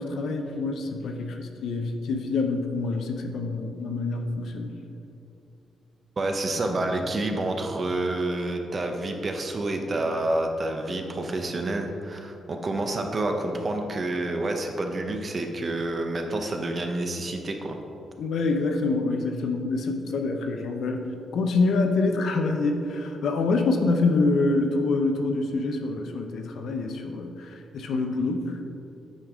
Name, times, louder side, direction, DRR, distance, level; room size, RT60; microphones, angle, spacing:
voice 1, 0.0-4.8 18.2-21.0 21.3-28.6, left 3 dB, 70° left, 4 dB, 0.7 m, -26 dB
voice 2, 6.2-17.8, right 2 dB, 35° right, 3 dB, 0.7 m, -28 dB
8.9 x 5.3 x 3.6 m, 2.7 s
cardioid pair, 125°, 0 cm